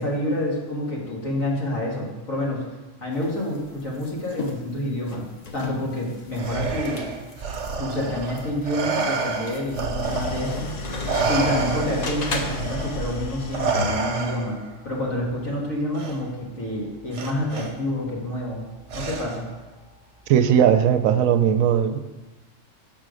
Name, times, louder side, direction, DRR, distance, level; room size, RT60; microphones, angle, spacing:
voice 1, 0.0-2.6 3.0-5.3 5.5-7.1 7.8-10.7 11.3-14.6 14.8-18.6 18.9-19.5, left 1 dB, 90° left, -4 dB, 2.2 m, -28 dB
sound 1, 3.1-12.8, left 3 dB, 40° left, 0.7 m, -38 dB
Respiratory sounds, 6.4-10.7 11.1-14.7 16.0-16.2 17.1-17.7 18.9-19.5, right 4 dB, 65° right, 1.1 m, -28 dB
Idling, 10.0-14.2, left 2 dB, 70° left, 1.2 m, -34 dB
voice 2, 20.3-22.0, right 9 dB, 85° right, 10 dB, 1.0 m, -18 dB
6.4 x 4.4 x 6.3 m, 1.1 s
omnidirectional pair, 1.4 m